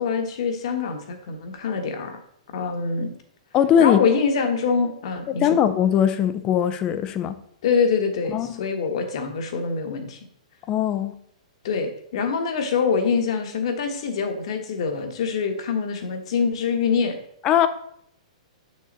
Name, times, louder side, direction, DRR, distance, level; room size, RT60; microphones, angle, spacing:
voice 1, 0.0-2.2 2.5-3.1 3.8-5.5 7.6-10.2 11.6-17.2, left 5 dB, 50° left, 1.3 m, -25 dB
voice 2, 3.5-4.0 5.4-7.4 8.3-8.6 10.7-11.1 17.4-17.7, left 9 dB, 20° left, 0.5 m, -20 dB
7.7 x 6.5 x 4.0 m
hypercardioid pair, 165°, 4 cm